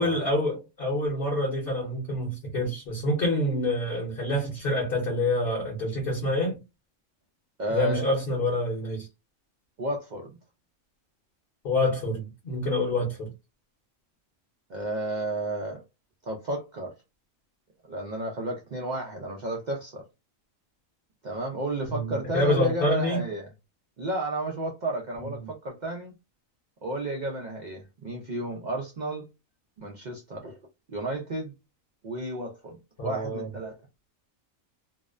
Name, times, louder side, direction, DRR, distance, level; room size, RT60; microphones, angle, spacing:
voice 1, 0.0-6.6 7.7-9.1 11.6-13.3 21.9-23.2 25.2-25.3 33.0-33.5, left 1 dB, 50° left, 0.9 m, -27 dB
voice 2, 7.6-8.2 9.8-10.4 14.7-15.8 16.3-16.9 17.9-20.0 21.2-23.5 24.0-26.2 26.8-29.3 29.8-30.6 30.9-31.5 32.0-32.8 33.0-33.8, right 1 dB, 75° right, 0.4 m, -32 dB
2.6 x 2.0 x 2.3 m
omnidirectional pair, 1.4 m